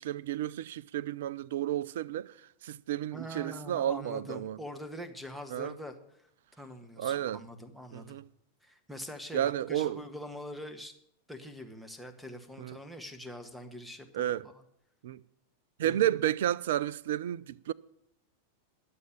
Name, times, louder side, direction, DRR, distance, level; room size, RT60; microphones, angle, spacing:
voice 1, 0.0-2.4 2.6-4.6 5.5-5.8 7.0-7.4 7.9-8.2 9.3-10.0 12.6-12.8 14.1-14.5 15.0-15.2 15.8-17.7, right 12 dB, 55° right, 0.5 m, -31 dB
voice 2, 3.1-6.2 6.6-8.2 8.6-10.9 11.3-14.3 15.8-16.2, equal, ahead, 1.6 m, -44 dB
11.0 x 7.8 x 8.6 m
figure-of-eight pair, 90°, 0 cm